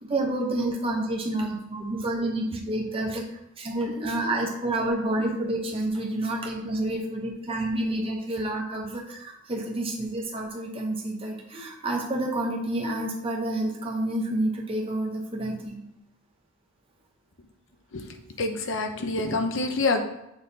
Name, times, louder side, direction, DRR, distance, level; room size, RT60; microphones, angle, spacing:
voice 1, 0.1-3.2 3.6-15.8, right 1 dB, 25° right, -1 dB, 1.0 m, -29 dB
voice 2, 18.4-20.0, left 3 dB, 65° left, 4 dB, 0.8 m, -26 dB
7.1 x 3.7 x 4.1 m, 0.85 s
head